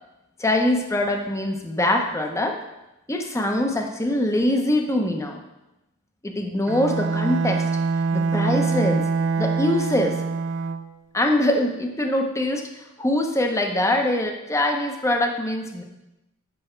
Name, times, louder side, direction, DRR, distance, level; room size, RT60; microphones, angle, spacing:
voice 1, 0.4-2.6 3.1-5.4 6.2-7.6 8.1-9.0 9.4-10.2 11.1-15.8, left 1 dB, 15° left, 3 dB, 0.7 m, -23 dB
Bowed string instrument, 6.7-11.0, right 4 dB, 55° right, 0.4 m, -24 dB
7.7 x 5.6 x 4.4 m, 0.93 s
head